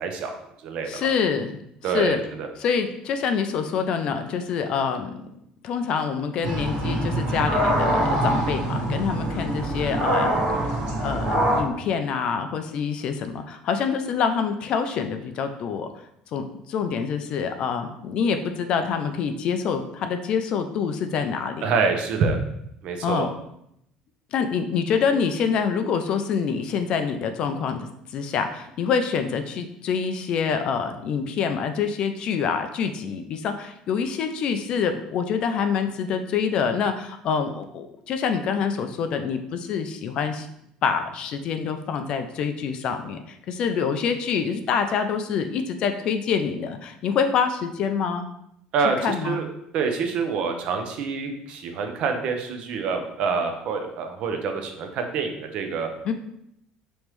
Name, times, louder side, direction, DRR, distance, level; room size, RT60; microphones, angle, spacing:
voice 1, 0.0-1.1 1.8-2.5 21.6-22.4 22.8-23.3 48.7-49.0 49.2-49.5 49.7-55.9, right 5 dB, 45° right, 5 dB, 0.6 m, -26 dB
voice 2, 0.9-1.6 1.9-2.2 2.6-5.3 5.6-10.4 11.0-15.9 16.3-21.7 23.0-23.3 24.3-40.5 40.8-48.3 49.0-49.4 56.0-56.1, left 6 dB, 40° left, 7 dB, 0.3 m, -26 dB
sound 1, 6.4-11.6, right 1 dB, 65° right, 1.5 m, -24 dB
5.1 x 3.0 x 3.1 m, 0.76 s
cardioid pair, 180°, 2 cm